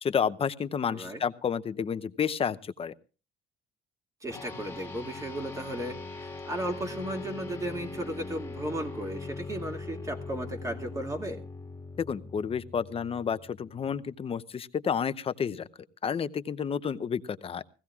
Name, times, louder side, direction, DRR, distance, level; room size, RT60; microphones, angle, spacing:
voice 1, 0.0-2.9 12.0-15.7 16.0-17.6, left 7 dB, 35° left, 13 dB, 0.7 m, -30 dB
voice 2, 0.9-1.2 4.2-11.4, right 1 dB, 20° right, 3 dB, 2.3 m, -35 dB
sound 1, 4.3-14.0, left 3 dB, 15° left, 1.9 m, -41 dB
21.5 x 16.5 x 2.4 m, 0.35 s
cardioid pair, 110°, 17 cm